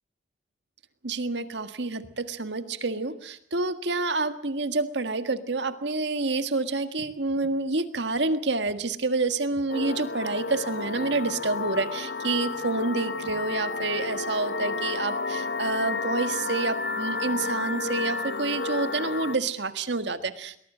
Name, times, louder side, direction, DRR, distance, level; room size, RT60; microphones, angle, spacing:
voice 1, 1.0-20.7, right 3 dB, 70° right, 10 dB, 1.7 m, -28 dB
sound 1, 9.7-19.4, left 3 dB, 55° left, 1.1 m, -31 dB
22.5 x 20.0 x 7.5 m, 0.64 s
head